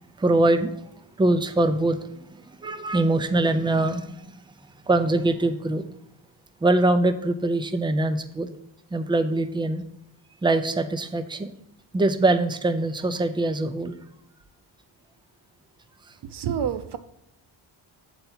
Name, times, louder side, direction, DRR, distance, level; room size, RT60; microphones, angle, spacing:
voice 1, 0.2-0.8 1.2-4.4 4.9-5.8 6.6-8.5 8.9-9.8 10.4-11.5 11.9-14.0, right 2 dB, 10° right, 9 dB, 0.4 m, -23 dB
voice 2, 16.3-17.0, right 8 dB, 60° right, 11 dB, 0.7 m, -28 dB
8.0 x 4.5 x 5.5 m, 0.75 s
wide cardioid pair, 155°, 47 cm